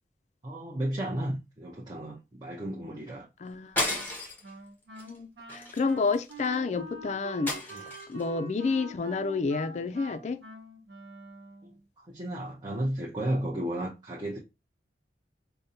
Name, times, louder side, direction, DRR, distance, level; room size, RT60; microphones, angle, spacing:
voice 1, 0.4-3.3 7.7-7.9 11.6-11.7 12.1-14.4, right 1 dB, 25° right, 0.6 m, -33 dB
voice 2, 3.4-3.8 5.1-7.8 8.1-10.4, left 4 dB, 40° left, 0.3 m, -30 dB
sound 1, 3.8-4.5 5.0-5.2 5.5-6.5 7.5-8.2, left 1 dB, 10° left, 0.8 m, -33 dB
Wind instrument woodwind instrument, 4.4-11.8, right 2 dB, 75° right, 1.0 m, -46 dB
5.0 x 2.1 x 2.7 m
head